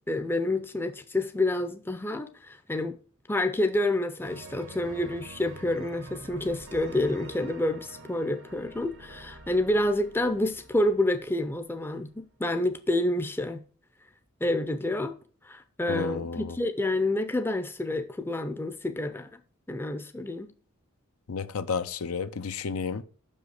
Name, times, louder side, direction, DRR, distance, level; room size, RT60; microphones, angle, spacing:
voice 1, 0.1-3.0 3.3-13.6 14.4-15.2 15.4-19.4 19.7-20.5, left 1 dB, 10° left, 0.5 m, -28 dB
sound 1, 4.2-11.9, right 2 dB, 55° right, 0.9 m, -47 dB
voice 2, 15.9-16.6 21.3-23.0, left 5 dB, 75° left, 0.6 m, -32 dB
6.1 x 5.4 x 6.5 m
head